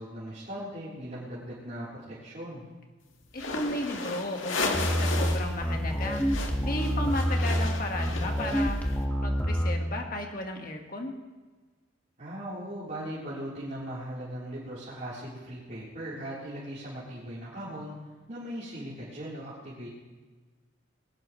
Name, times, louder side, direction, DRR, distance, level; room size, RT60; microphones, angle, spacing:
voice 1, 0.0-2.7 12.2-17.9 18.3-19.9, right 1 dB, 40° right, -10 dB, 3.8 m, -39 dB
sound 1, 3.3-5.5 5.8-8.9, left 3 dB, 90° left, 1.8 m, -34 dB
voice 2, 3.3-6.3 6.6-8.8 9.2-11.1, left 1 dB, 50° left, 3 dB, 1.7 m, -34 dB
sound 2, 4.7-9.8, equal, 10° left, 1.6 m, -27 dB
20.5 x 18.5 x 3.2 m, 1.3 s
head